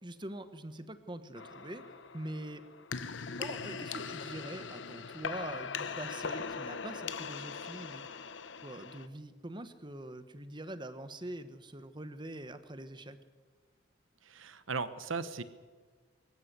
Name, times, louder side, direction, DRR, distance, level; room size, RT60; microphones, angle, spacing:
voice 1, 0.0-1.8 2.1-2.6 3.4-8.1 8.6-13.2, right 1 dB, 25° right, 11 dB, 1.1 m, -44 dB
sound 1, 1.4-9.1, left 5 dB, 70° left, 1.0 m, -40 dB
voice 2, 14.2-15.4, right 4 dB, 85° right, 13 dB, 1.1 m, -37 dB
24.0 x 14.5 x 8.2 m, 1.5 s
head